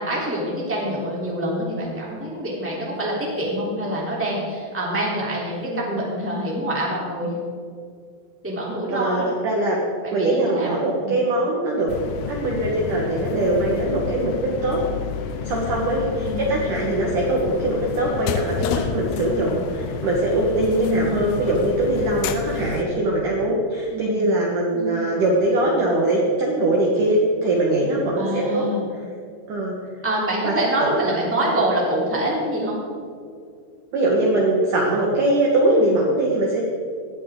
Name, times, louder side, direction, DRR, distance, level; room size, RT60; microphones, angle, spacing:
voice 1, 0.0-7.3 8.4-9.3 10.0-11.2 16.1-16.5 20.6-21.2 23.9-24.3 24.7-25.0 28.1-28.8 30.0-32.8, right 1 dB, 5° right, -5 dB, 2.7 m, -26 dB
voice 2, 5.6-6.1 8.9-9.8 10.1-11.9 12.3-14.8 15.4-28.7 29.5-29.7 30.4-31.0 33.9-36.6, right 1 dB, 60° right, -2 dB, 2.4 m, -22 dB
sound 1, 11.9-22.8, left 7 dB, 90° left, 2.2 m, -30 dB
18.0 x 13.5 x 3.9 m, 2.3 s
omnidirectional pair, 5.5 m